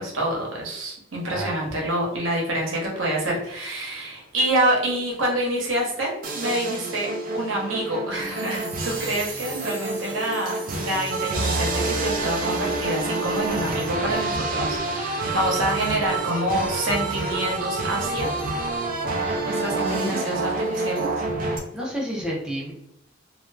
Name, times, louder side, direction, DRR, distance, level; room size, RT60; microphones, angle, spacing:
voice 1, 0.0-7.1 7.3-18.3 19.4-21.1, right 1 dB, 85° right, -3 dB, 0.9 m, -27 dB
sound 1, 6.2-21.6, right 2 dB, 45° right, 0.5 m, -28 dB
voice 2, 19.8-20.1 21.7-22.7, equal, 5° right, -5 dB, 0.7 m, -30 dB
2.6 x 2.4 x 2.2 m, 0.75 s
head